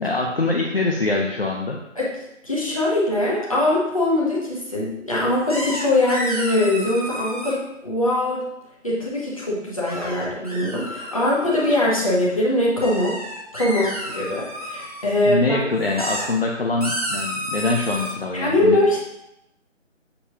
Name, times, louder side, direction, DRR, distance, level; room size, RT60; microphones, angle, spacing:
voice 1, 0.0-1.8 15.3-18.8, left 2 dB, 50° left, -1 dB, 0.7 m, -23 dB
voice 2, 2.4-8.4 8.8-13.2 13.5-15.6 18.3-19.0, left 1 dB, 25° left, -6 dB, 1.2 m, -22 dB
sound 1, 5.5-7.5 9.9-11.9 12.8-15.0 15.8-16.3 16.8-18.1, equal, 30° right, 0.9 m, -31 dB
6.9 x 5.3 x 2.9 m, 0.86 s
figure-of-eight pair, 175°, 38 cm